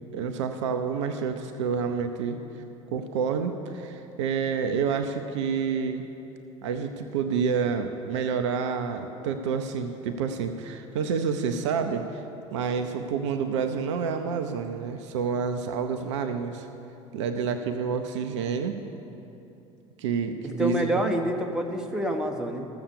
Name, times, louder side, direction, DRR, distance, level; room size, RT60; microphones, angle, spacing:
voice 1, 0.1-2.4 2.9-6.0 6.6-12.2 12.5-16.7 17.1-18.8 20.0-21.1, right 6 dB, 60° right, 7 dB, 0.6 m, -28 dB
voice 2, 20.4-22.7, right 1 dB, 5° right, 2 dB, 1.1 m, -27 dB
13.5 x 7.1 x 6.7 m, 2.9 s
figure-of-eight pair, 65°, 17 cm